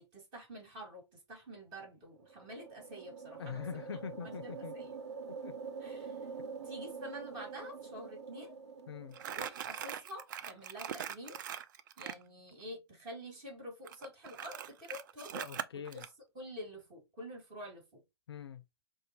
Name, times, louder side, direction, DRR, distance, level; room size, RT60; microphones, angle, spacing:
voice 1, 0.0-3.9 4.2-5.0 5.8-6.2 6.6-8.5 9.3-11.4 12.0-18.0, equal, 25° right, 2.2 m, -48 dB
sound 1, 2.2-9.8, right 5 dB, 70° right, 0.9 m, -46 dB
voice 2, 3.4-4.8 5.3-5.6 8.9-9.2 15.4-16.1 18.3-18.6, left 8 dB, 65° left, 0.4 m, -43 dB
Crumpling crinkling, 9.1-12.2 13.9-16.1, right 9 dB, 45° right, 0.4 m, -41 dB
5.0 x 2.1 x 2.9 m
figure-of-eight pair, 125°, 14 cm